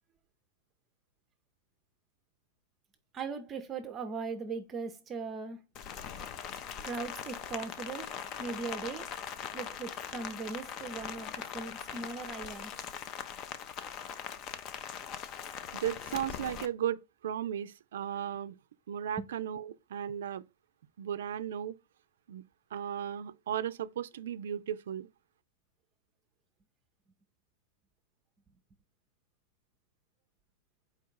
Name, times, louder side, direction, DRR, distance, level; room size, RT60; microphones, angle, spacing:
voice 1, 3.1-5.6 6.8-8.1 8.4-9.1 9.5-12.7 19.2-19.3, right 4 dB, 25° right, 0.5 m, -39 dB
Rain, 5.7-16.7, left 8 dB, 35° left, 0.5 m, -41 dB
voice 2, 15.7-17.0 17.2-18.6 18.9-20.4 21.0-21.7 22.3-22.4 22.7-25.1, right 10 dB, 75° right, 0.3 m, -35 dB
4.5 x 2.4 x 4.6 m
hypercardioid pair, 125°, 0 cm